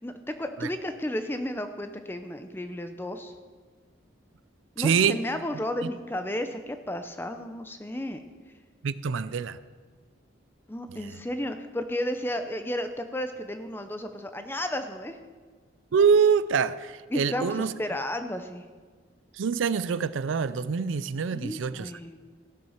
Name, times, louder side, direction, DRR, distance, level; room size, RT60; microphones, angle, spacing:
voice 1, 0.0-3.3 4.8-8.2 10.7-15.2 17.1-18.7 21.3-22.2, left 1 dB, 10° left, 8 dB, 0.6 m, -33 dB
voice 2, 4.8-5.2 5.5-5.9 8.8-9.6 10.9-11.1 15.9-17.7 19.3-21.9, right 6 dB, 85° right, 16 dB, 0.4 m, -25 dB
16.0 x 7.5 x 5.7 m, 1.5 s
head